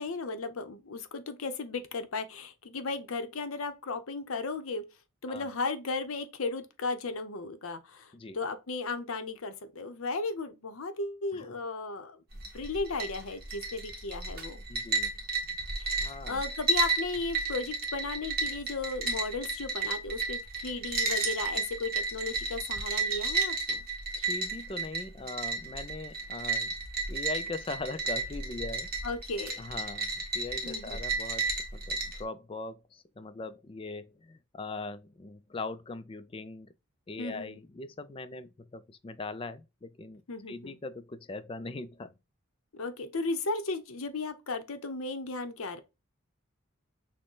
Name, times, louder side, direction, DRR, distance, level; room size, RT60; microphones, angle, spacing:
voice 1, 0.0-4.8 5.2-12.2 12.5-14.6 15.8-23.8 29.0-29.7 30.6-31.0 37.2-37.6 40.3-40.8 42.7-45.8, left 3 dB, 80° left, 0.7 m, -35 dB
sound 1, 12.3-32.2, right 3 dB, 45° right, 1.3 m, -33 dB
voice 2, 14.7-15.1 15.4-15.5 16.0-16.4 24.1-26.7 27.1-28.9 29.6-36.7 37.1-40.2 40.5-42.1, left 3 dB, 25° left, 0.3 m, -40 dB
6.2 x 2.1 x 3.7 m
head